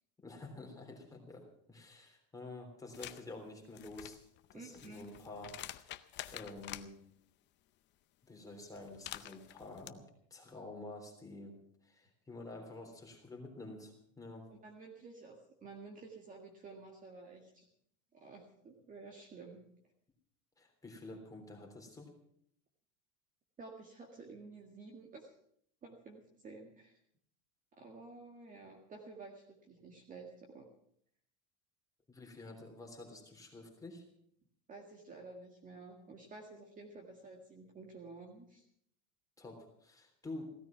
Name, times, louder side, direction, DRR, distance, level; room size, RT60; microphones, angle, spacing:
voice 1, 0.2-4.2 4.5-5.9 6.3-7.0 8.3-10.0 10.3-14.5 20.6-22.1 32.1-34.0 39.4-40.5, left 2 dB, 10° left, 1 dB, 3.4 m, -49 dB
sound 1, 2.9-3.2 3.6-6.9 8.8-9.9, left 14 dB, 30° left, 0.6 m, -47 dB
voice 2, 4.5-5.1 14.5-17.6 18.1-19.7 23.6-25.3 25.8-27.0 27.7-30.7 34.7-38.6, right 3 dB, 20° right, 1 dB, 1.9 m, -52 dB
16.0 x 14.0 x 5.9 m, 0.67 s
supercardioid pair, 150°, 36 cm